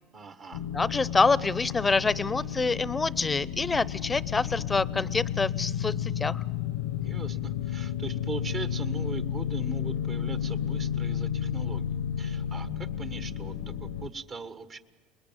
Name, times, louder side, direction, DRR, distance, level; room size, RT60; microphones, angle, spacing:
voice 1, 0.1-0.7 7.0-14.8, right 4 dB, 40° right, 11 dB, 1.4 m, -40 dB
sound 1, 0.5-14.1, left 9 dB, 85° left, 1.0 m, -32 dB
voice 2, 0.7-6.4, left 4 dB, 20° left, 20 dB, 0.7 m, -26 dB
29.5 x 21.0 x 9.2 m, 1.4 s
hypercardioid pair, 80°, 0 cm